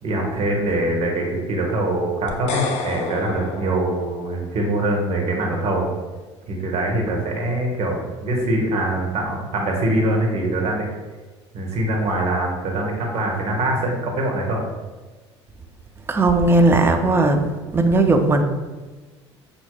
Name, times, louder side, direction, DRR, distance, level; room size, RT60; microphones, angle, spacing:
voice 1, 0.0-5.9 6.5-10.9 11.5-14.6, right 1 dB, 45° right, 0 dB, 1.0 m, -23 dB
sound 1, 2.3-4.6, left 4 dB, 50° left, 0.5 m, -30 dB
voice 2, 16.1-17.4 17.7-18.4, right 2 dB, 15° right, 5 dB, 0.4 m, -16 dB
5.7 x 2.7 x 2.3 m, 1.3 s
figure-of-eight pair, 65°, 15 cm